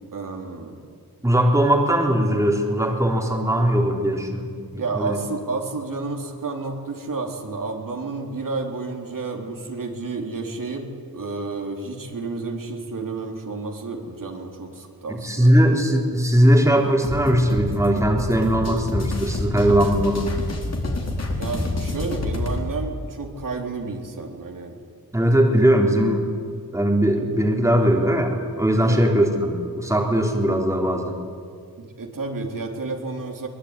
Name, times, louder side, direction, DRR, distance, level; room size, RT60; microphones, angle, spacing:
voice 1, 0.1-0.8 4.8-15.6 21.4-24.8 28.8-29.0 31.8-33.5, right 3 dB, 60° right, 1 dB, 4.0 m, -31 dB
voice 2, 1.2-4.5 4.9-5.2 15.1-20.3 25.1-26.3 26.7-31.2, equal, 10° right, 0 dB, 3.7 m, -19 dB
sound 1, 17.0-22.7, left 2 dB, 40° left, 4.7 m, -28 dB
24.0 x 22.0 x 9.9 m, 2.2 s
wide cardioid pair, 115°, 37 cm